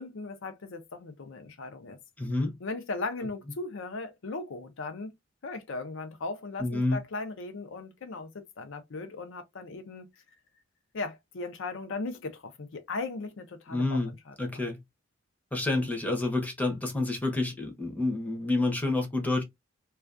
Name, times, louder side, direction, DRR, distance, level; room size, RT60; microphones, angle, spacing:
voice 1, 0.0-2.0 2.6-5.1 5.4-10.1 10.9-14.0 14.3-14.7, left 3 dB, 65° left, 0.5 m, -37 dB
voice 2, 2.2-2.6 6.6-7.0 13.7-14.1 14.4-14.8 15.5-19.4, left 2 dB, 10° left, 0.6 m, -28 dB
2.3 x 2.2 x 2.4 m
head